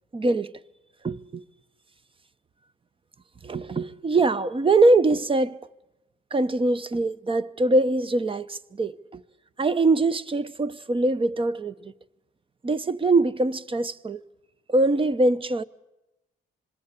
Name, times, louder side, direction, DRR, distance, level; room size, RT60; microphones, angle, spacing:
voice 1, 0.1-0.5 1.0-1.4 3.4-5.6 6.3-9.2 9.6-11.7 12.6-14.2 14.7-15.6, right 2 dB, 25° right, 0.9 m, -23 dB
26.0 x 22.0 x 8.4 m
cardioid pair, 90°, 20 cm